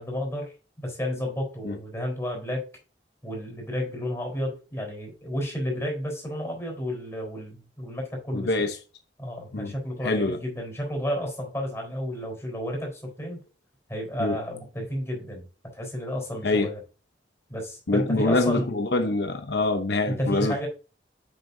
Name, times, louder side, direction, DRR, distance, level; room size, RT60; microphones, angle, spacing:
voice 1, 0.0-2.7 3.2-8.7 9.2-13.4 13.9-15.5 15.7-16.8 17.5-18.7 20.1-20.7, equal, 15° left, 4.0 m, -32 dB
voice 2, 8.3-8.8 9.5-9.7 10.0-10.4 14.2-14.4 16.4-16.7 17.9-20.7, left 2 dB, 75° left, 0.8 m, -25 dB
8.5 x 6.4 x 2.7 m
head